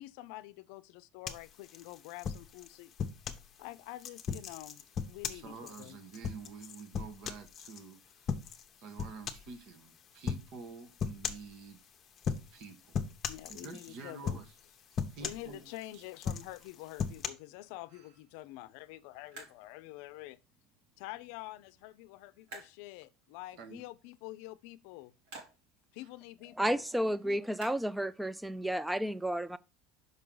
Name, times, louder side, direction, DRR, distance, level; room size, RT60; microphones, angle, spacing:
voice 1, 0.0-2.9 3.6-6.0 13.3-14.4 15.2-20.4 21.0-25.1 25.9-26.8, left 17 dB, 75° left, 0.5 m, -47 dB
sound 1, 1.3-3.5 4.0-7.8 8.3-8.7 9.0-9.5 10.3-10.5 11.0-11.5 12.2-12.6 12.9-13.9 14.3-14.6 15.0-15.8 16.2-17.3, left 6 dB, 35° left, 0.8 m, -37 dB
voice 2, 5.3-8.3 8.8-11.8 12.5-12.9 13.5-14.5 15.1-15.7 15.9-16.0 23.6-23.8, right 4 dB, 55° right, 1.2 m, -48 dB
sound 2, 15.4-28.7, right 2 dB, 85° right, 3.9 m, -58 dB
voice 3, 26.6-29.6, right 1 dB, 5° right, 0.4 m, -32 dB
6.0 x 5.4 x 3.8 m
cardioid pair, 135°, 0 cm